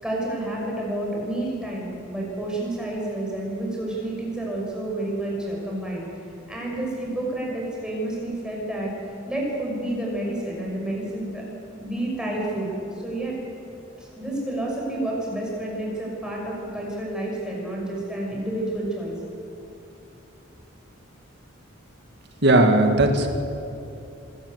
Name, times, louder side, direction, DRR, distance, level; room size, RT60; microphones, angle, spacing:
voice 1, 0.0-6.1 6.5-8.9 9.3-11.4 11.8-12.7 13.0-13.3 14.0-19.2, right 1 dB, 5° right, -3 dB, 6.2 m, -29 dB
voice 2, 22.4-23.3, right 2 dB, 55° right, 5 dB, 2.0 m, -17 dB
26.5 x 13.0 x 8.2 m, 2.8 s
head